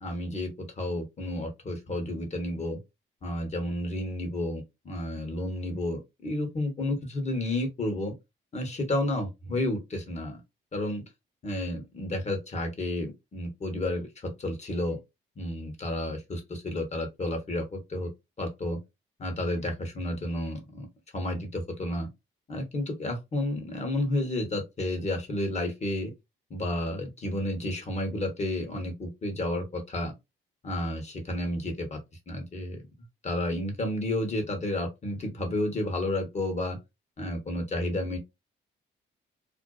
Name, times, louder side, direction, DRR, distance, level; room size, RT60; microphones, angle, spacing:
voice 1, 0.0-2.8 3.2-8.1 8.5-10.4 10.7-11.0 11.4-15.0 15.4-18.1 18.4-18.8 19.2-20.9 21.1-22.1 22.5-26.1 26.5-30.1 30.6-32.0 32.3-32.8 33.2-36.8 37.2-38.2, left 1 dB, 35° left, 1.0 m, -31 dB
2.5 x 2.2 x 2.3 m
cardioid pair, 90°, 20 cm